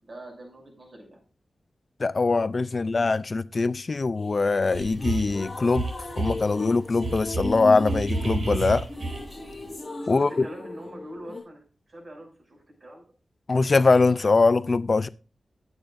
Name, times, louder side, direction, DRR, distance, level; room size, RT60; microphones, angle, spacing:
voice 1, 0.0-1.2 2.9-3.1 10.0-13.1, right 1 dB, 40° right, 6.4 m, -44 dB
voice 2, 2.0-8.9 10.1-10.3 13.5-15.1, left 3 dB, 45° left, 0.4 m, -22 dB
sound 1, 4.2-11.4, left 2 dB, 10° left, 7.7 m, -37 dB
sound 2, 4.7-5.4 5.7-6.4 7.0-9.5, right 3 dB, 70° right, 3.2 m, -30 dB
18.0 x 8.8 x 2.6 m
wide cardioid pair, 125°, 0 cm